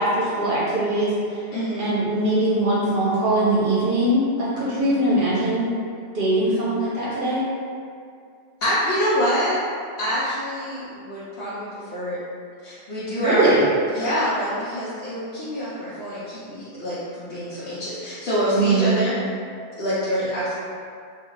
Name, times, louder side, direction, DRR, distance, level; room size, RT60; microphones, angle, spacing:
voice 1, 0.0-1.4 1.8-5.7 6.1-7.4 13.1-13.7 18.5-18.9, right 1 dB, 55° right, -8 dB, 0.8 m, -21 dB
voice 2, 1.5-1.9 4.8-4.9 8.6-9.6 10.0-11.7 11.9-12.2 12.6-13.5 13.9-19.2 19.8-20.6, equal, 70° left, -12 dB, 0.9 m, -26 dB
2.5 x 2.4 x 3.0 m, 2.3 s
omnidirectional pair, 1.1 m